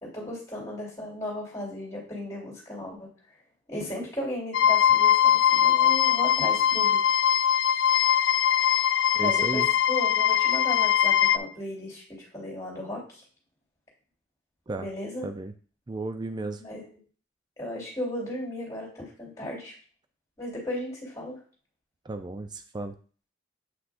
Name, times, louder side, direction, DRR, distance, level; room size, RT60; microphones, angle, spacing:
voice 1, 0.0-3.1 3.7-7.0 9.2-13.2 14.8-15.3 16.6-17.0 17.6-19.7 20.4-21.4, left 1 dB, 15° left, -4 dB, 3.1 m, -35 dB
sound 1, 4.5-11.4, left 9 dB, 60° left, 0.4 m, -21 dB
voice 2, 9.1-9.7 14.7-14.9 15.2-15.5 15.9-16.6 22.0-22.9, right 2 dB, 20° right, 8 dB, 0.4 m, -34 dB
8.1 x 6.0 x 2.5 m, 0.40 s
head